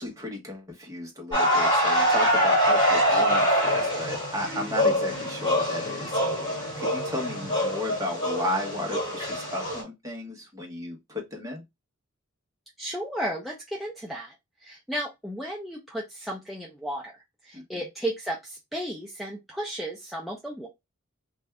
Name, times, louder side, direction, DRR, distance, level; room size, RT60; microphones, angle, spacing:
voice 1, 0.0-11.6 17.5-17.8, left 1 dB, 15° right, 1.1 m, -34 dB
sound 1, 1.3-9.8, equal, 20° left, 2.3 m, -24 dB
voice 2, 12.8-14.3 14.6-17.1 17.4-20.7, right 1 dB, ahead, 0.6 m, -34 dB
3.3 x 2.6 x 3.4 m
head